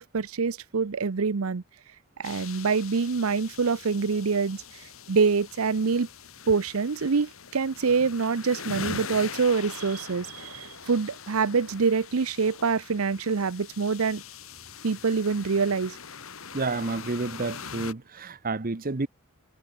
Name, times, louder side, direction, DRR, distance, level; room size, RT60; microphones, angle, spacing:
voice 1, 0.0-1.6 2.2-6.1 6.5-14.2 14.8-16.0, right 5 dB, 80° right, 0.7 m, -25 dB
sound 1, 2.2-17.9, left 6 dB, 75° left, 2.3 m, -42 dB
voice 2, 16.5-19.1, right 3 dB, 40° right, 0.9 m, -30 dB
head